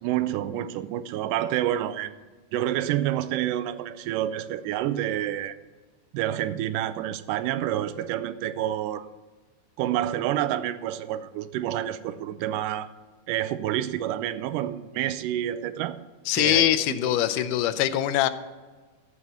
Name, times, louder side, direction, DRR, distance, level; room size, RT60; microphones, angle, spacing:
voice 1, 0.0-2.2 2.5-5.6 6.1-9.1 9.8-12.9 13.3-16.0 16.4-17.5, right 12 dB, 90° right, 13 dB, 2.2 m, -28 dB
voice 2, 16.3-18.3, left 12 dB, 85° left, 11 dB, 2.1 m, -23 dB
12.5 x 5.5 x 7.8 m, 1.3 s
omnidirectional pair, 3.7 m